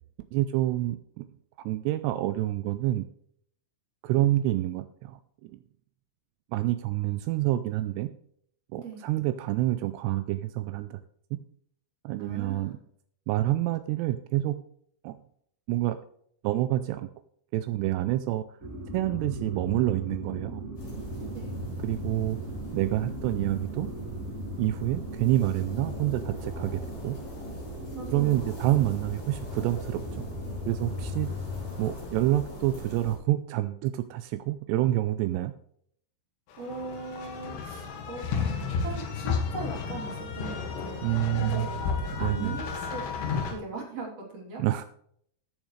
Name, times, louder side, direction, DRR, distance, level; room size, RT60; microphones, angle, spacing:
voice 1, 0.3-1.3 1.7-3.1 4.0-5.6 6.5-8.1 8.7-11.0 12.0-12.8 13.3-14.6 15.0-15.2 15.7-16.0 16.4-17.1 17.5-18.4 18.9-20.6 21.8-22.4 22.7-23.9 24.6-27.2 28.1-30.3 30.7-31.3 31.8-35.5 41.0-41.7 42.1-42.5 44.6-44.8, right 15 dB, 85° right, 10 dB, 2.4 m, -27 dB
voice 2, 12.2-12.8 21.3-21.6 27.9-28.4 31.2-31.3 36.6-38.5 38.8-41.1 41.4-43.0 43.5-44.6, right 4 dB, 35° right, -2 dB, 3.8 m, -39 dB
sound 1, 18.6-31.8, equal, 55° right, 0.8 m, -38 dB
sound 2, 20.8-33.2, left 1 dB, 55° left, 7.7 m, -42 dB
sound 3, 36.5-43.5, left 5 dB, 90° left, 4.3 m, -32 dB
17.5 x 7.2 x 3.2 m, 0.66 s
omnidirectional pair, 5.4 m